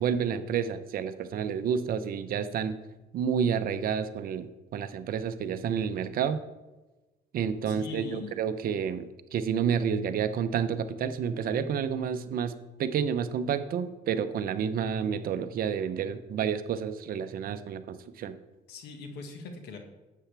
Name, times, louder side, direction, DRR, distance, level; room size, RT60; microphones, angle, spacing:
voice 1, 0.0-2.8 3.1-6.4 7.3-12.5 12.8-18.4, right 7 dB, 60° right, 10 dB, 0.8 m, -30 dB
voice 2, 7.7-8.3 18.7-19.8, left 4 dB, 80° left, 5 dB, 1.7 m, -41 dB
11.5 x 8.4 x 3.4 m, 1.1 s
cardioid pair, 110°, 17 cm